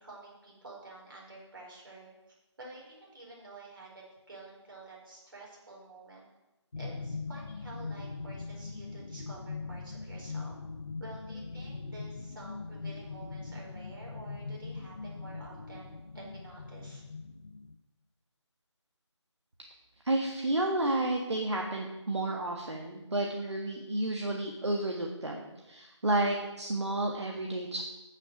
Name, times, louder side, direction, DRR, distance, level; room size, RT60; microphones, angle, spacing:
voice 1, 0.0-6.2 6.8-10.5 11.0-17.0, right 2 dB, 45° right, -3 dB, 4.7 m, -50 dB
sound 1, 6.7-17.7, left 4 dB, 55° left, 0.7 m, -41 dB
voice 2, 20.0-27.8, right 1 dB, 65° right, 1 dB, 1.7 m, -31 dB
15.5 x 6.6 x 6.2 m, 1.0 s
figure-of-eight pair, 160°, 16 cm